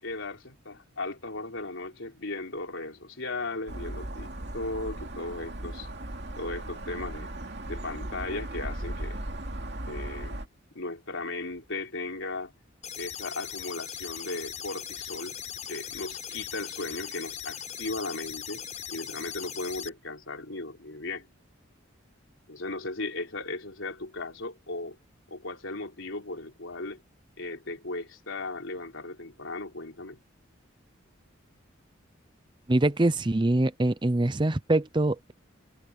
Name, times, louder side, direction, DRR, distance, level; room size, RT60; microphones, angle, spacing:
voice 1, 0.0-5.9 6.4-7.3 7.7-9.2 9.9-10.4 10.7-12.5 13.0-15.4 15.7-21.3 22.5-25.0 25.3-27.0 27.4-30.2, left 2 dB, 75° left, 3.7 m, -36 dB
sound 1, 3.7-10.5, right 1 dB, 55° right, 2.6 m, -37 dB
sound 2, 12.8-19.9, left 9 dB, 35° left, 6.0 m, -39 dB
voice 2, 32.7-35.3, right 2 dB, 25° right, 0.6 m, -24 dB
head